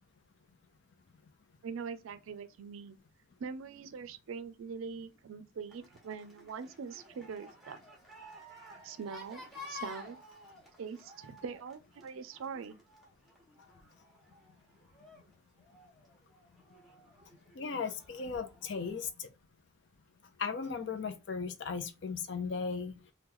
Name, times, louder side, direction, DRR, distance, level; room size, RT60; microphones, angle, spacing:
voice 1, 1.6-3.0 3.4-7.8 8.8-10.2 10.8-12.8, right 5 dB, 80° right, 0.4 m, -43 dB
sound 1, 5.7-19.1, left 2 dB, ahead, 0.8 m, -53 dB
voice 2, 17.6-19.3 20.4-22.9, left 5 dB, 60° left, 0.4 m, -36 dB
3.0 x 2.2 x 3.6 m
head